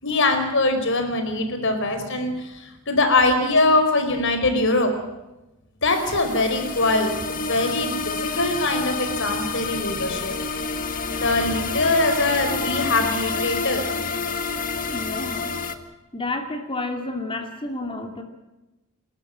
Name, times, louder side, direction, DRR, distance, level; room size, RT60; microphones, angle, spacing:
voice 1, 0.0-4.9 5.8-10.4 11.2-13.8, left 2 dB, 55° left, 7 dB, 4.9 m, -22 dB
sound 1, 5.9-15.7, left 4 dB, 40° left, 1.7 m, -28 dB
voice 2, 14.9-15.5 16.1-18.2, left 2 dB, 25° left, 5 dB, 2.7 m, -30 dB
29.0 x 13.5 x 8.8 m, 1.0 s
head